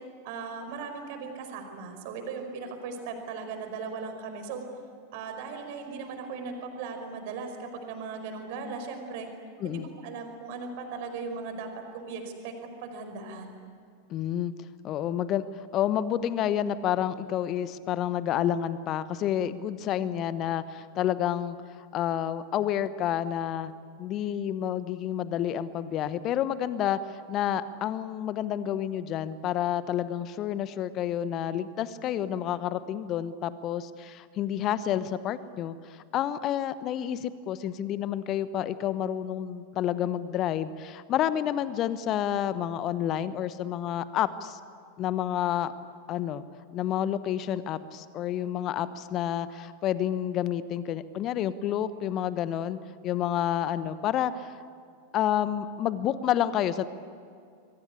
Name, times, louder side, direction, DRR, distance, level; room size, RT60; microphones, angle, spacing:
voice 1, 0.2-4.6 5.1-9.3 9.6-12.5 12.8-13.6, right 4 dB, 50° right, 5 dB, 5.0 m, -38 dB
voice 2, 14.1-14.5 14.8-21.6 21.9-23.7 24.0-44.6 45.0-45.7 46.1-46.4 46.7-54.5 55.1-56.9, left 10 dB, 35° left, 15 dB, 1.0 m, -29 dB
27.5 x 23.0 x 8.5 m, 2.3 s
figure-of-eight pair, 90°, 0 cm